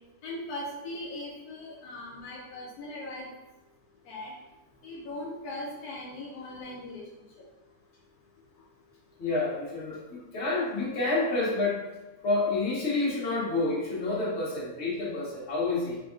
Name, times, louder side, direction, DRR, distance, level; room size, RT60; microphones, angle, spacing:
voice 1, 0.2-3.3 4.1-4.3 4.8-7.0, left 1 dB, 85° left, -3 dB, 1.1 m, -39 dB
voice 2, 9.2-11.8 12.2-16.0, left 2 dB, 50° left, -5 dB, 1.3 m, -29 dB
3.7 x 3.5 x 2.4 m, 1.0 s
omnidirectional pair, 1.6 m